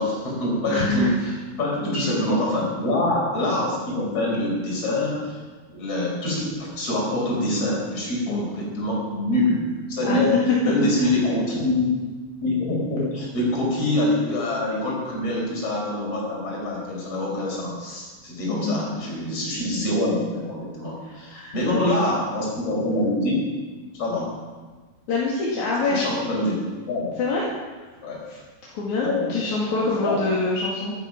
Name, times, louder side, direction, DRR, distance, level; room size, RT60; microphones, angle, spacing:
voice 1, 0.0-5.4 5.8-10.3 10.6-11.9 12.4-23.4 23.9-24.3 25.8-26.6 26.9-27.1 28.0-28.4 29.0-29.4 29.7-30.3, left 1 dB, 30° left, -3 dB, 5.6 m, -25 dB
voice 2, 0.7-1.1 1.8-2.1 8.3-8.4 10.0-10.2 18.5-18.8 21.3-22.1 25.1-26.0 27.2-27.4 28.7-30.9, left 3 dB, 50° left, -5 dB, 2.9 m, -25 dB
14.5 x 12.5 x 6.0 m, 1.3 s
omnidirectional pair, 5.5 m